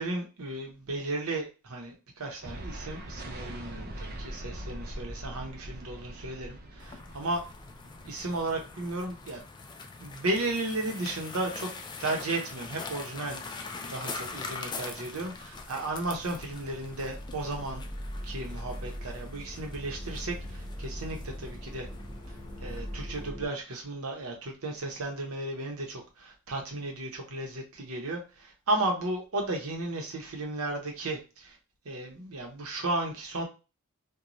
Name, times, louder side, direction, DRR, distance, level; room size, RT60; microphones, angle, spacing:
voice 1, 0.0-7.4 8.0-9.4 10.0-11.7 12.0-17.8 18.2-21.9 22.6-31.5 31.8-33.4, right 2 dB, 75° right, 2 dB, 0.8 m, -34 dB
sound 1, 2.4-9.4, right 1 dB, 45° right, 0.5 m, -42 dB
sound 2, 6.8-23.3, left 4 dB, 20° left, 0.3 m, -43 dB
sound 3, 15.1-23.5, equal, 15° right, 0.8 m, -41 dB
3.0 x 2.2 x 2.5 m, 0.31 s
head